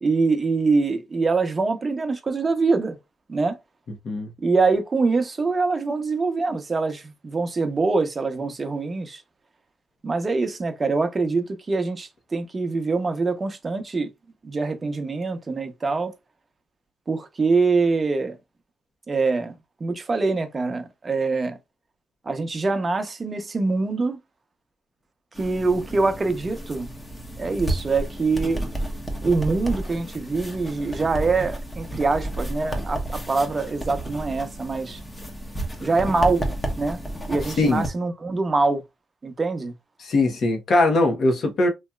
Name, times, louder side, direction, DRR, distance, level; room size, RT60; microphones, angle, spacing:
voice 1, 0.0-3.0 3.3-3.6 4.4-9.2 10.0-14.1 14.4-16.1 17.1-18.4 19.1-21.6 22.3-24.2 25.4-26.9 27.4-28.7 29.2-35.0 35.8-36.5 36.8-37.0 37.3-38.8 39.2-39.7, right 3 dB, 30° right, 0.8 m, -24 dB
sound 1, 25.4-37.9, right 1 dB, 15° left, 0.9 m, -32 dB
voice 2, 40.0-41.7, left 2 dB, 55° left, 1.1 m, -20 dB
3.1 x 2.7 x 2.3 m
cardioid pair, 90°, 0 cm